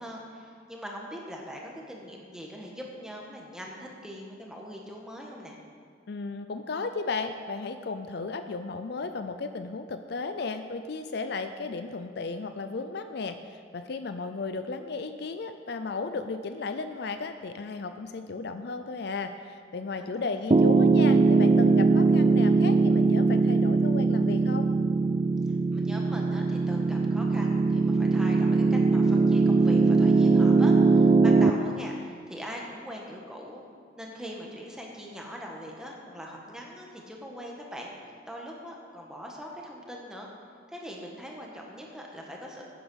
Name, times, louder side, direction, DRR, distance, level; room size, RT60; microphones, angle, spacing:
voice 1, 0.0-5.6 19.9-20.6 25.4-33.6 33.9-40.3 40.7-42.6, equal, 5° right, -1 dB, 1.5 m, -42 dB
voice 2, 6.1-24.7, left 4 dB, 60° left, 9 dB, 0.5 m, -35 dB
Piano, 20.5-31.5, right 3 dB, 30° right, 0.4 m, -21 dB
10.0 x 8.9 x 6.3 m, 2.1 s
head